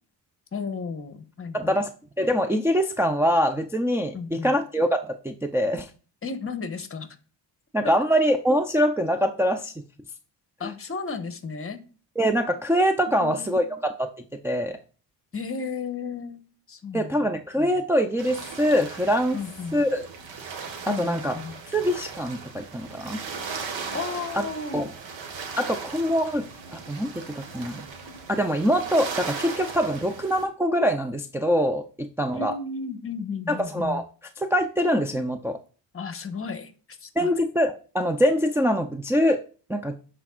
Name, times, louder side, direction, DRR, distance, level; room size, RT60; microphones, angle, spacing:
voice 1, 0.5-1.8 4.1-4.6 6.2-7.1 7.8-8.0 10.6-11.8 13.1-13.7 15.3-16.4 16.7-17.3 19.3-19.9 20.8-21.6 23.9-24.9 32.3-34.0 35.9-37.3, left 5 dB, 30° left, 10 dB, 1.3 m, -34 dB
voice 2, 1.5-1.9 2.2-5.9 7.7-9.7 12.2-14.1 14.4-14.8 16.9-19.4 19.7-20.1 20.9-21.3 21.7-23.2 24.7-24.9 25.6-26.4 26.7-27.8 28.3-32.5 33.5-34.0 34.4-35.6 37.2-39.4 39.7-40.0, equal, 5° right, 2 dB, 0.6 m, -24 dB
sound 1, 18.2-30.4, right 5 dB, 75° right, 1.8 m, -38 dB
12.0 x 4.7 x 2.5 m, 0.38 s
cardioid pair, 85°, 45 cm